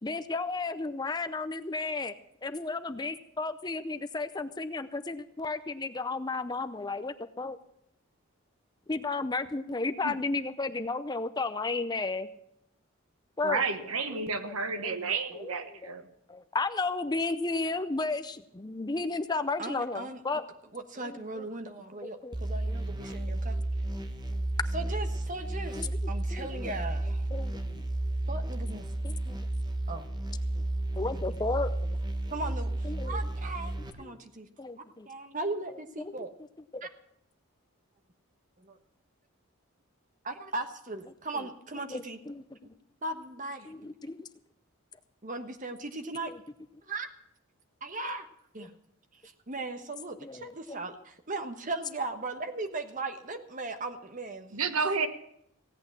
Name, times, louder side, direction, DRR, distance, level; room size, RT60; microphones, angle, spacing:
voice 1, 0.0-2.1 2.4-7.6 8.9-12.3 13.4-13.6 14.1-15.9 16.3-20.4 21.0-21.5 22.0-22.3 22.7-22.8 24.3-24.5 25.8-26.7 27.3-27.8 29.0-29.5 30.6-30.7 31.0-31.7 32.8-33.2 34.0-34.2 34.6-35.1 36.0-36.2 41.3-41.5 41.9-42.7 43.6-44.3 46.3-46.4 48.6-48.7 50.2-50.8, left 3 dB, 20° left, 10 dB, 0.5 m, -34 dB
voice 2, 13.4-16.0 54.5-55.1, right 4 dB, 90° right, 9 dB, 1.3 m, -31 dB
voice 3, 19.6-20.2 20.7-23.6 24.7-27.3 28.3-28.9 29.9-30.1 31.0-31.2 32.3-34.5 35.1-36.3 36.8-36.9 38.6-38.8 40.2-42.2 42.6-42.7 43.0-43.7 45.2-46.3 46.9-47.1 47.8-48.3 48.5-48.7 49.5-54.6, right 2 dB, 35° right, 7 dB, 1.2 m, -38 dB
sound 1, 22.3-33.9, right 1 dB, 20° right, 1.3 m, -32 dB
16.5 x 8.6 x 7.3 m, 0.74 s
head